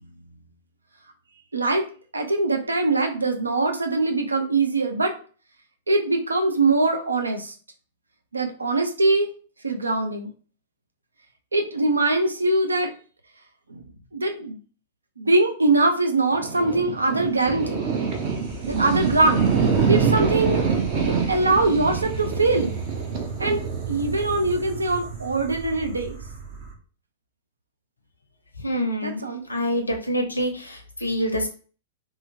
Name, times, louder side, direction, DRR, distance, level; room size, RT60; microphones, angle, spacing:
voice 1, 1.5-1.9 2.1-5.1 5.9-7.5 8.3-9.3 9.6-10.3 11.5-12.9 13.7-13.8 14.1-14.6 15.2-17.8 18.7-19.4 19.9-20.6 21.1-22.8 23.4-23.6 23.9-26.2 29.0-29.4, right 2 dB, 80° right, 5 dB, 0.4 m, -22 dB
Giant flying airship, 16.3-26.7, right 5 dB, 40° right, 0.6 m, -26 dB
voice 2, 28.6-29.2 29.5-31.5, equal, 85° left, 3 dB, 0.5 m, -26 dB
2.7 x 2.4 x 2.7 m, 0.39 s
figure-of-eight pair, 105°, 0 cm